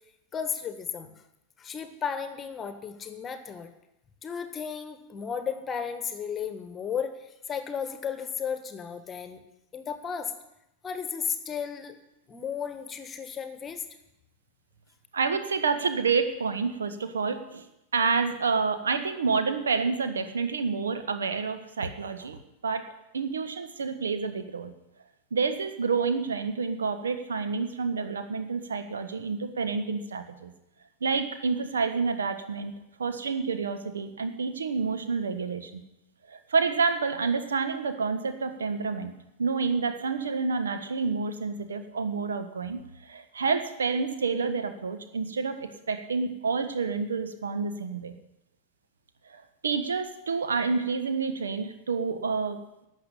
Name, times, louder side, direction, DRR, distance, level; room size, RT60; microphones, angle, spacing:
voice 1, 0.3-1.1 1.6-3.7 4.2-9.4 9.7-10.3 10.8-12.0 12.3-13.9, left 7 dB, 20° left, 9 dB, 1.5 m, -34 dB
voice 2, 15.1-17.7 17.9-22.4 22.6-22.9 23.1-24.7 25.3-30.5 31.0-35.8 36.3-39.1 39.4-48.1 49.3-52.6, right 5 dB, 70° right, 8 dB, 1.3 m, -29 dB
12.0 x 7.2 x 9.9 m, 0.88 s
figure-of-eight pair, 90°, 0 cm